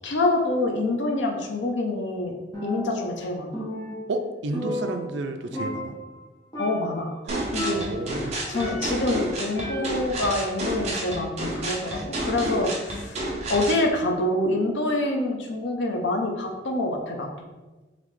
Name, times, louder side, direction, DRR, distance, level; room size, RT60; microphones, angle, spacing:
voice 1, 0.0-3.6 6.6-7.1 7.5-7.8 8.5-13.2 13.5-17.3, left 2 dB, 75° left, 2 dB, 0.6 m, -26 dB
Percussion, 2.5-3.2 3.5-5.3 5.5-6.2 6.5-7.0 7.5-9.1 9.5-10.2, equal, 20° left, 0.9 m, -34 dB
voice 2, 4.1-5.9 7.3-8.5, right 2 dB, 75° right, 6 dB, 0.4 m, -31 dB
sound 1, 7.3-13.8, right 1 dB, 35° right, 0.8 m, -30 dB
4.1 x 3.1 x 3.1 m, 1.2 s
head